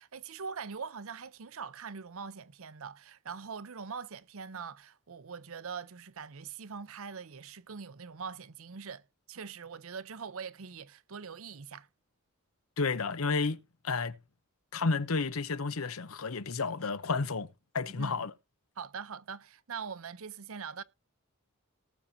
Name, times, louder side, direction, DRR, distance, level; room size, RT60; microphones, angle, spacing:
voice 1, 0.0-11.9 17.9-18.2 18.8-20.8, right 6 dB, 70° right, 0.7 m, -43 dB
voice 2, 12.8-13.6 13.8-14.2 14.7-17.5 17.7-18.3, left 4 dB, 70° left, 0.8 m, -31 dB
19.0 x 7.3 x 2.7 m
head